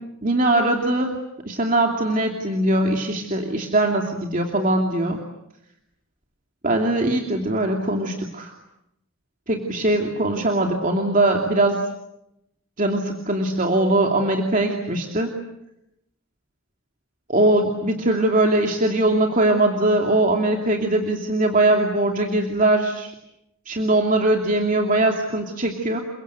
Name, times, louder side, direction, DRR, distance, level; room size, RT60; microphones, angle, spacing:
voice 1, 0.2-1.1 1.4-5.2 6.6-8.5 9.5-11.8 12.8-15.3 17.3-23.1 23.7-26.0, right 2 dB, 40° right, 2 dB, 2.7 m, -21 dB
29.5 x 24.0 x 8.2 m, 0.84 s
head